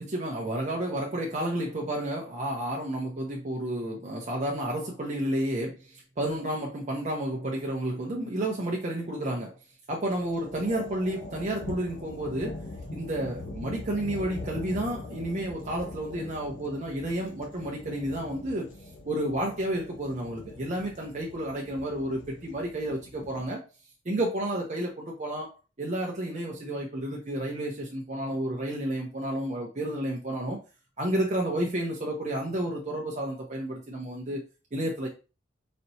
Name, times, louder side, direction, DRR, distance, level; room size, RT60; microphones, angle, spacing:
voice 1, 0.0-9.5 9.9-12.6 12.9-18.7 19.0-23.6 24.0-25.5 25.8-30.6 31.0-34.4 34.7-35.1, right 1 dB, 40° right, 0.7 m, -31 dB
sound 1, 9.9-23.5, left 2 dB, 85° left, 0.9 m, -42 dB
4.2 x 2.9 x 2.7 m
head